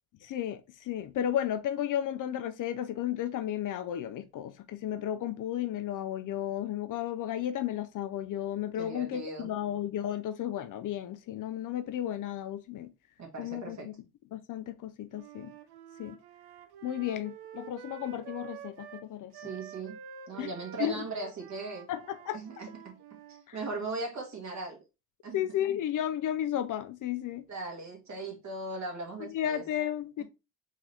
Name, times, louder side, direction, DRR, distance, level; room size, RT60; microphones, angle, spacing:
voice 1, 0.2-12.9 13.4-13.9 14.3-15.5 16.0-16.2 16.8-19.3 20.4-20.5 20.8-20.9 21.9-22.4 23.5-23.6 25.3-27.5 29.3-30.2, left 11 dB, 50° left, 0.5 m, -33 dB
voice 2, 8.8-9.5 13.2-13.9 19.3-20.0 20.3-21.9 22.3-23.0 23.5-24.8 25.2-25.5 27.5-29.6 30.2-30.3, right 3 dB, 45° right, 1.7 m, -38 dB
Wind instrument woodwind instrument, 15.1-23.5, right 9 dB, 75° right, 0.7 m, -48 dB
3.6 x 2.8 x 3.3 m
supercardioid pair, 70°, 40 cm